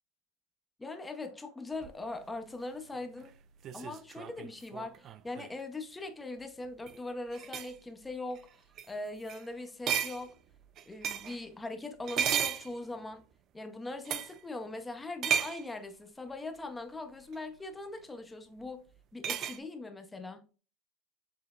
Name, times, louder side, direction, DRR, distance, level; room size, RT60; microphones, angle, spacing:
voice 1, 0.8-3.3 3.7-8.5 8.9-10.4 10.9-13.2 13.5-18.8 19.1-20.4, left 2 dB, 10° left, 0.6 m, -41 dB
sound 1, 1.8-5.6 6.7-7.0 7.3-7.8 8.3-8.5 8.8-8.9 9.3-9.5 9.9-11.4 12.0-13.2 14.0-14.4 15.2-15.7 17.3-17.4 19.2-19.6, right 8 dB, 35° right, 0.3 m, -34 dB
5.8 x 3.3 x 2.3 m
supercardioid pair, 150°, 0 cm